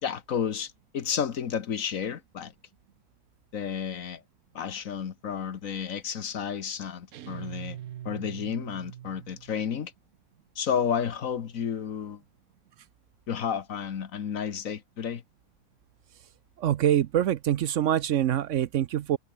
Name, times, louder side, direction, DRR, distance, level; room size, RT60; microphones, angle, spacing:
voice 1, 0.0-2.5 3.5-4.2 4.5-7.8 8.0-9.9 10.5-12.2 13.3-15.2, left 7 dB, 70° left, 1.6 m, -31 dB
Dist Chr Bmin rock up pm, 7.1-9.7, right 11 dB, 80° right, 1.3 m, -42 dB
voice 2, 16.6-19.2, right 11 dB, 65° right, 0.9 m, -25 dB
omnidirectional pair, 1.5 m